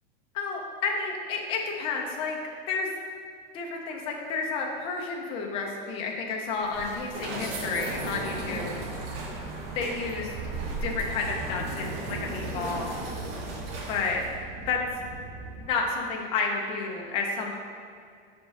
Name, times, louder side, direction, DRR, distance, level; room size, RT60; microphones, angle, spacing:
voice 1, 0.3-2.4 2.7-2.9 3.5-8.8 9.7-10.3 10.8-12.9 13.9-14.2 14.5-14.8 15.6-17.5, left 4 dB, 20° left, 0 dB, 0.4 m, -31 dB
sound 1, 6.5-14.4, right 2 dB, 75° right, 1.0 m, -36 dB
sound 2, 10.3-15.7, right 3 dB, 25° right, 0.6 m, -40 dB
5.3 x 3.5 x 5.3 m, 2.3 s
supercardioid pair, 170°, 29 cm